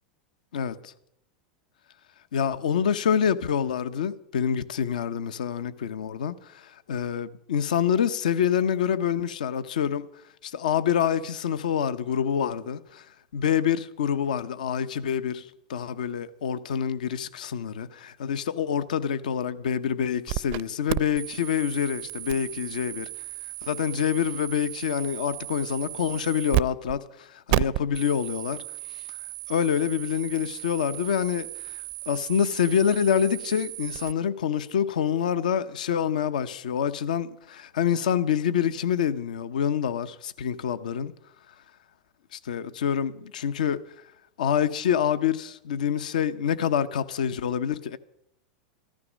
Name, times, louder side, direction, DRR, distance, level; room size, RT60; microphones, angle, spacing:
voice 1, 0.5-0.9 2.3-10.0 10.4-13.1 13.3-23.1 23.6-28.6 29.1-29.2 29.5-41.1 42.3-43.8 44.4-48.0, left 8 dB, 85° left, 0.7 m, -26 dB
sound 1, 20.3-20.6 20.9-26.6 26.9-27.0 27.5-34.1, right 19 dB, 55° right, 0.5 m, -33 dB
14.5 x 13.0 x 6.2 m
hypercardioid pair, 110°, 4 cm